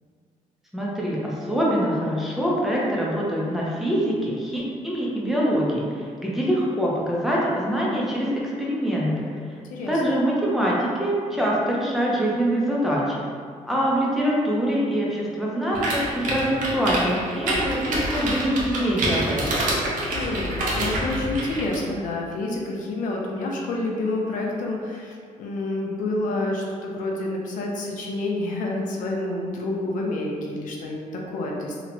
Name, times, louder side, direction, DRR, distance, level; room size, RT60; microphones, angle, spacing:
voice 1, 0.7-9.3 9.9-13.2 13.6-19.5, equal, ahead, -5 dB, 0.5 m, -24 dB
sound 1, 15.7-21.8, right 1 dB, 75° right, 0.6 m, -27 dB
voice 2, 20.1-31.8, left 2 dB, 75° left, -1 dB, 0.4 m, -28 dB
2.8 x 2.1 x 2.6 m, 2.1 s
cardioid pair, 100°, 14 cm